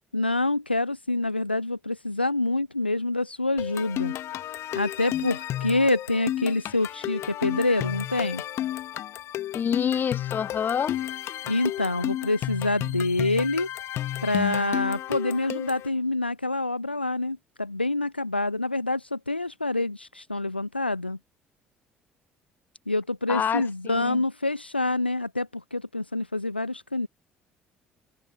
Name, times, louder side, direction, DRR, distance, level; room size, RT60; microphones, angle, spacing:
voice 1, 0.1-4.1 4.7-8.4 11.5-13.7 14.2-21.2 22.9-27.1, left 2 dB, 90° left, 0.7 m, -26 dB
sound 1, 3.6-15.9, left 13 dB, 55° left, 1.3 m, -32 dB
voice 2, 9.5-11.0 23.3-24.2, left 7 dB, 35° left, 0.5 m, -27 dB
figure-of-eight pair, 50°, 5 cm